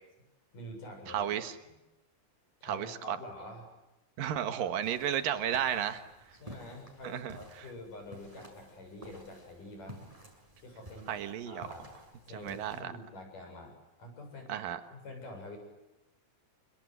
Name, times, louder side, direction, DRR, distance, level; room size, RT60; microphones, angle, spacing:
voice 1, 0.5-1.3 1.6-1.7 2.6-3.7 6.4-10.0 10.6-11.1 11.5-11.9 12.3-14.5 14.9-15.6, left 1 dB, 65° left, 3 dB, 9.0 m, -47 dB
voice 2, 1.1-1.5 2.6-3.2 4.2-6.0 7.0-7.4 11.1-11.7 12.3-12.9 14.5-14.8, right 10 dB, 90° right, 9 dB, 3.2 m, -33 dB
sound 1, 4.8-12.8, right 1 dB, 10° right, 6.2 m, -53 dB
30.0 x 24.0 x 8.2 m, 0.98 s
omnidirectional pair, 3.9 m